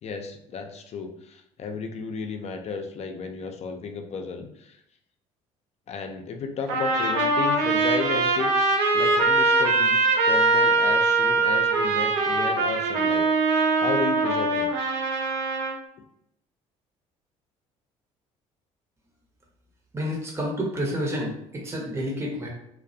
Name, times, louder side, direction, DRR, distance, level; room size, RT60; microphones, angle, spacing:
voice 1, 0.0-4.8 5.9-13.3 13.8-14.7, left 5 dB, 45° left, 4 dB, 0.4 m, -33 dB
Trumpet, 6.7-15.8, right 3 dB, 85° right, 0.5 m, -22 dB
voice 2, 19.9-22.5, equal, 15° right, -2 dB, 0.7 m, -29 dB
2.2 x 2.1 x 2.6 m, 0.75 s
supercardioid pair, 70°, 15 cm